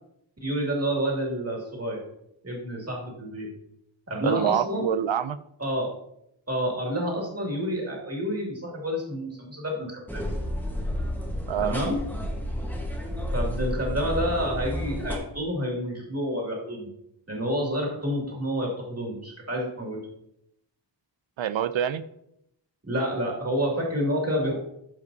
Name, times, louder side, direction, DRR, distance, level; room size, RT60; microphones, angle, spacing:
voice 1, 0.4-2.0 2.4-3.5 4.1-4.9 5.6-5.9 6.5-10.2 11.6-12.0 13.3-16.9 17.3-20.0 22.8-24.6, equal, 35° right, -1 dB, 2.3 m, -29 dB
voice 2, 4.2-5.4 11.5-11.8 21.4-22.0, right 9 dB, 85° right, 14 dB, 0.5 m, -26 dB
sound 1, 10.1-15.2, equal, 5° left, 1.2 m, -31 dB
13.0 x 5.2 x 2.7 m, 0.76 s
wide cardioid pair, 100°, 45 cm